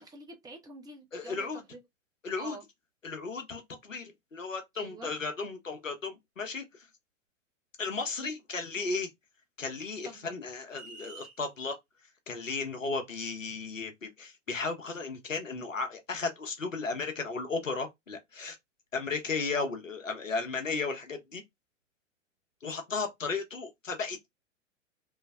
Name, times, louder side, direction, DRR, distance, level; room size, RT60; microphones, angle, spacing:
voice 1, 0.0-1.8 2.4-2.6 4.8-5.1 10.0-10.3, right 3 dB, 10° right, 0.5 m, -47 dB
voice 2, 1.1-1.6 2.2-2.6 3.0-6.9 7.8-9.1 9.6-11.8 12.3-18.6 18.9-21.4 22.6-24.3, left 4 dB, 90° left, 0.8 m, -35 dB
sound 1, 10.7-11.4, right 4 dB, 45° right, 1.4 m, -48 dB
3.1 x 2.0 x 2.3 m
figure-of-eight pair, 100°, 37 cm